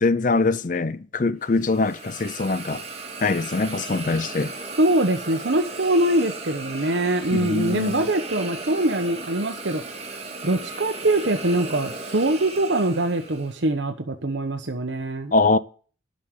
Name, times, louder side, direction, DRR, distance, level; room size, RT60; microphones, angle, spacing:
voice 1, 0.0-2.8 3.2-4.5 7.3-8.1 15.3-15.6, left 3 dB, 40° left, 0.6 m, -23 dB
Hiss, 1.5-13.6, right 3 dB, 30° right, 1.9 m, -36 dB
voice 2, 4.8-10.1 10.4-15.3, right 1 dB, 65° right, 1.1 m, -23 dB
11.0 x 6.5 x 9.2 m
head